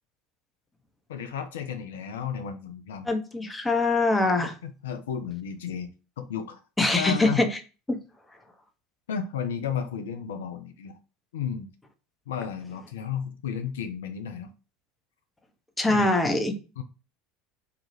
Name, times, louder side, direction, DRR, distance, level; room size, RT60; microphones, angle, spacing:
voice 1, 1.1-3.1 4.6-6.6 6.9-7.4 9.1-11.0 11.3-11.7 12.3-14.5 15.9-16.1 16.8-16.9, left 8 dB, 75° left, 0.4 m, -33 dB
voice 2, 3.1-4.5 6.8-7.6 7.9-8.0 15.8-16.6, left 2 dB, 10° left, 0.7 m, -23 dB
2.8 x 2.3 x 3.0 m
hypercardioid pair, 75°, 0 cm